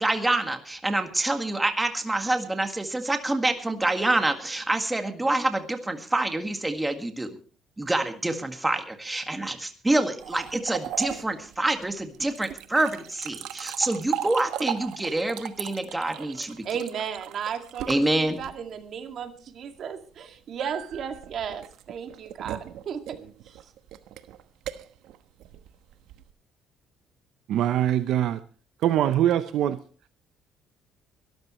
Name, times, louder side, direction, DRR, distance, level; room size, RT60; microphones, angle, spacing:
voice 1, 0.0-7.4 7.8-16.6 17.9-18.4, right 2 dB, 10° right, 6 dB, 1.8 m, -26 dB
sound 1, 10.2-18.8 20.6-26.3, right 12 dB, 85° right, 1.1 m, -38 dB
voice 2, 16.6-23.0, right 7 dB, 50° right, 6 dB, 2.2 m, -34 dB
voice 3, 27.5-28.4 28.8-29.8, right 11 dB, 70° right, 11 dB, 0.7 m, -23 dB
23.5 x 13.5 x 3.1 m, 0.40 s
cardioid pair, 135°, 0 cm